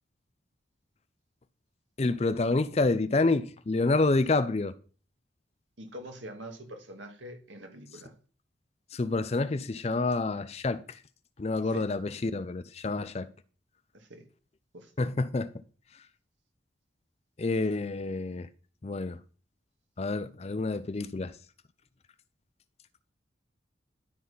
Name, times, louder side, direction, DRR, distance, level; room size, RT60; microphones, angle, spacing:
voice 1, 2.0-4.7 8.9-11.0 11.4-13.3 15.0-15.5 17.4-18.5 18.8-19.2 20.0-21.3, left 3 dB, 35° left, 0.4 m, -28 dB
voice 2, 5.8-8.1 11.6-11.9 13.9-14.2 14.7-14.9, equal, 85° right, 1.9 m, -44 dB
12.0 x 4.1 x 5.5 m
head